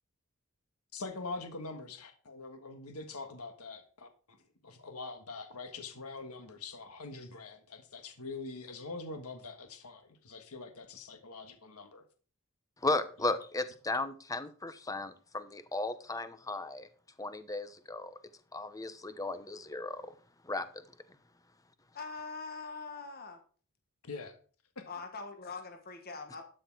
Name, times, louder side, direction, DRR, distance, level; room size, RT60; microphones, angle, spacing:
voice 1, 0.9-4.1 4.6-12.0 24.0-24.4, left 3 dB, 80° left, 1.6 m, -44 dB
voice 2, 12.8-16.9 17.2-18.2 18.5-20.1 20.4-20.7, left 2 dB, 15° left, 0.9 m, -35 dB
voice 3, 21.9-23.4 24.9-26.4, left 4 dB, 45° left, 1.5 m, -43 dB
12.0 x 6.5 x 4.7 m
head